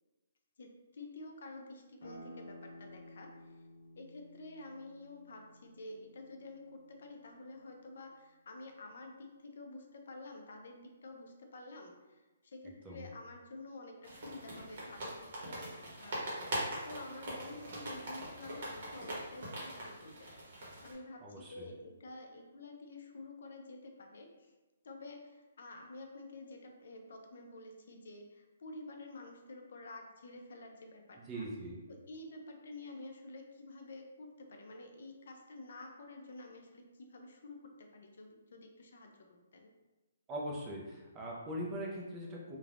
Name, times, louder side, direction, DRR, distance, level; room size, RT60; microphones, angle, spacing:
voice 1, 0.6-3.6 4.0-24.5 24.8-31.5 31.9-39.7, left 2 dB, 55° left, 3 dB, 0.4 m, -50 dB
sound 1, 2.0-7.4, left 1 dB, 75° left, 1.2 m, -54 dB
sound 2, 14.0-20.9, right 1 dB, 45° right, 0.8 m, -42 dB
voice 2, 21.2-21.7 31.3-31.8 40.3-42.6, right 1 dB, 10° right, -3 dB, 0.3 m, -41 dB
3.2 x 2.1 x 2.4 m, 1.2 s
hypercardioid pair, 175°, 0 cm